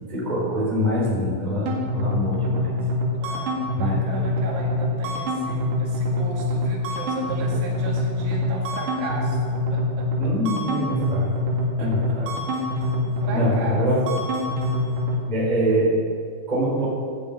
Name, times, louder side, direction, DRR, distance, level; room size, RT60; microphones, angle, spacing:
voice 1, 0.1-2.7 3.8-4.0 10.2-11.3 11.8-12.3 13.3-14.0 15.3-16.0 16.5-16.9, equal, 10° right, -6 dB, 4.4 m, -24 dB
sound 1, 1.7-15.2, left 1 dB, 60° right, 3.6 m, -25 dB
voice 2, 3.2-10.1 11.8-12.2 12.6-13.9, right 3 dB, 80° right, -2 dB, 4.5 m, -36 dB
14.5 x 8.5 x 8.5 m, 2.2 s
omnidirectional pair, 5.4 m